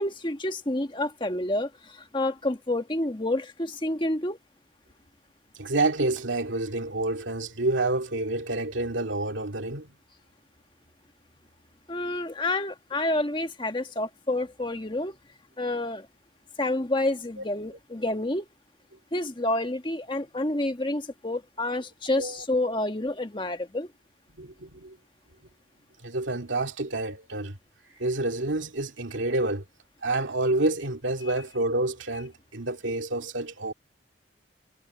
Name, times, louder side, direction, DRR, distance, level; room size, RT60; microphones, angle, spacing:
voice 1, 0.0-4.4 11.9-15.2 15.6-16.1 16.6-18.4 19.1-23.9, left 1 dB, 25° left, 1.5 m, -29 dB
voice 2, 5.5-9.9 17.4-17.5 22.2-22.4 24.4-25.0 26.0-27.6 28.0-29.6 30.0-33.7, right 2 dB, 90° right, 2.4 m, -28 dB
head